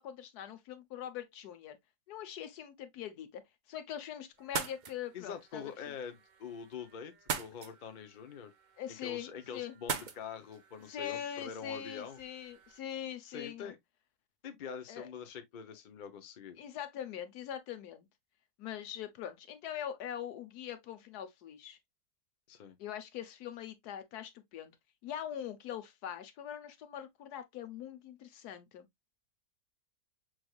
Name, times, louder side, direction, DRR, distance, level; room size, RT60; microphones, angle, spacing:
voice 1, 0.0-1.8 2.1-3.4 3.7-5.6 8.8-9.7 10.9-13.7 14.9-15.1 16.6-18.1 18.6-21.8 22.8-24.8 25.0-28.9, left 10 dB, 85° left, 1.3 m, -42 dB
sound 1, 4.4-12.8, right 6 dB, 60° right, 0.5 m, -44 dB
voice 2, 5.1-8.5 8.9-12.2 13.2-13.8 14.4-16.6 22.5-22.8, left 7 dB, 45° left, 0.7 m, -45 dB
6.0 x 3.2 x 2.3 m
omnidirectional pair, 1.7 m